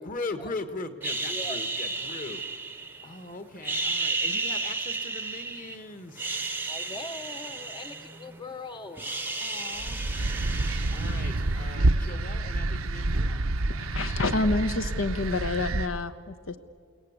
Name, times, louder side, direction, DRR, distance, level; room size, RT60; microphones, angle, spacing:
voice 1, 0.0-2.4 3.0-6.3 9.4-10.0 10.9-13.4, left 3 dB, 40° left, 9 dB, 1.6 m, -39 dB
sound 1, 1.0-3.2 3.6-5.8 6.1-8.5 8.8-11.6, right 3 dB, 10° right, 0.8 m, -33 dB
voice 2, 1.3-1.6 6.7-9.1, left 2 dB, 20° left, 8 dB, 0.8 m, -41 dB
sound 2, 9.8-15.9, right 2 dB, 80° right, 0.9 m, -28 dB
voice 3, 13.8-16.6, left 2 dB, 70° left, 9 dB, 0.9 m, -28 dB
30.0 x 18.0 x 8.2 m, 2.2 s
head